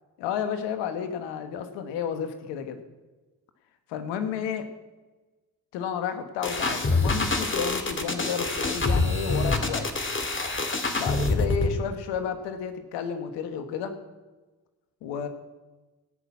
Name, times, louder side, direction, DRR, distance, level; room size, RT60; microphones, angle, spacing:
voice 1, 0.2-2.8 3.9-4.7 5.7-9.9 10.9-13.9 15.0-15.3, left 7 dB, 85° left, 8 dB, 1.3 m, -31 dB
sound 1, 6.4-11.7, left 2 dB, 30° left, 2.2 m, -26 dB
17.0 x 6.1 x 8.5 m, 1.2 s
hypercardioid pair, 45°, 41 cm